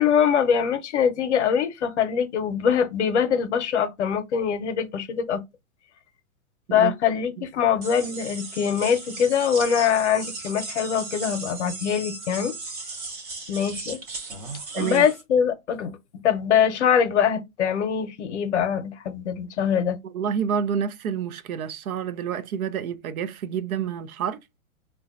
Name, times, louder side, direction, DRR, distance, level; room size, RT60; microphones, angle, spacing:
voice 1, 0.0-5.4 6.7-12.5 13.5-14.0 14.7-16.0 16.2-20.0, left 8 dB, 55° left, 0.7 m, -23 dB
sound 1, 7.8-15.2, right 3 dB, 30° right, 0.5 m, -36 dB
voice 2, 14.7-15.1 20.0-24.4, right 8 dB, 75° right, 0.6 m, -28 dB
3.9 x 2.2 x 2.4 m
hypercardioid pair, 155°, 43 cm